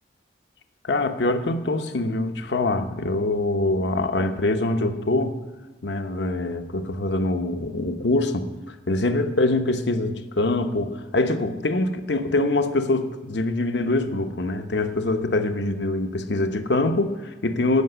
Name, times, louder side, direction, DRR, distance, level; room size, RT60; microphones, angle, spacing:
voice 1, 0.8-5.4 5.8-17.8, left 2 dB, 70° left, 7 dB, 1.0 m, -24 dB
13.5 x 5.9 x 8.0 m, 1.1 s
head